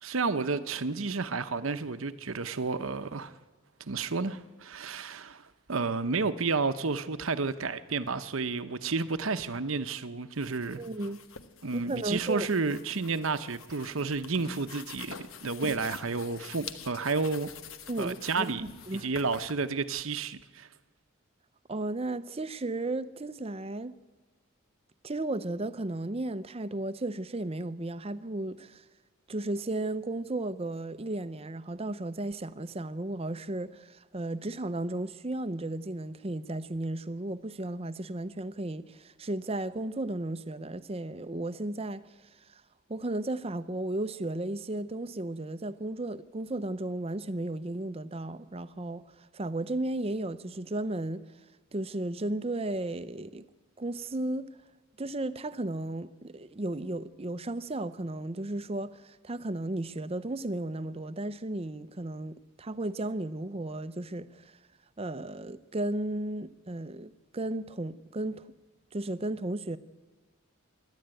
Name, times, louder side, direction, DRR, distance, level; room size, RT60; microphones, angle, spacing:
voice 1, 0.0-3.4 3.8-5.4 5.7-10.8 11.6-17.5 18.0-18.6 19.0-20.7, right 4 dB, 70° right, 0.9 m, -31 dB
sound 1, 10.3-19.5, left 6 dB, 75° left, 1.1 m, -47 dB
voice 2, 10.8-11.2 11.7-12.5 17.9-18.5 18.9-19.1 21.7-23.9 25.0-28.8 29.3-42.1 42.5-42.6 42.9-51.2 51.7-53.4 53.8-54.5 55.0-64.5 65.0-68.5 68.9-69.8, right 2 dB, 30° right, 0.6 m, -34 dB
27.0 x 11.5 x 9.0 m
head